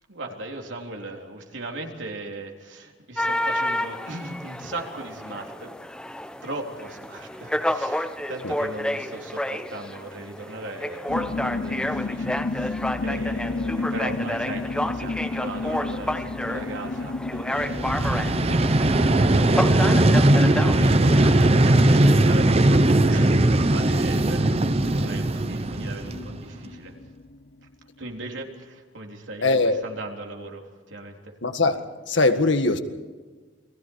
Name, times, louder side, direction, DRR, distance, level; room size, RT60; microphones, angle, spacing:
voice 1, 0.1-5.7 6.4-18.5 19.9-26.9 28.0-31.3, right 2 dB, 85° right, 3.7 m, -38 dB
sound 1, 3.2-22.2, left 1 dB, 5° left, 0.8 m, -31 dB
sound 2, 11.1-27.7, left 3 dB, 55° left, 0.6 m, -33 dB
Vehicle, 17.6-26.5, right 1 dB, 35° right, 0.8 m, -19 dB
voice 2, 29.4-29.8 31.4-32.8, left 3 dB, 80° left, 1.8 m, -21 dB
29.5 x 20.5 x 4.7 m
head